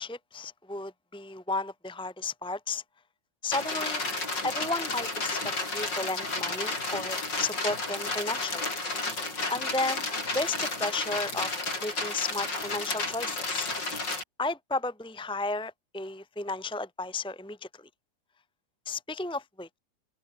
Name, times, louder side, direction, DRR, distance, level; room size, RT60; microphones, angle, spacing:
voice 1, 0.0-2.8 3.4-4.0 4.4-8.7 9.5-13.7 14.4-17.9 18.9-19.8, left 3 dB, 5° left, 2.0 m, -33 dB
sound 1, 3.5-14.2, left 2 dB, 60° left, 6.9 m, -32 dB
open air
omnidirectional pair, 2.1 m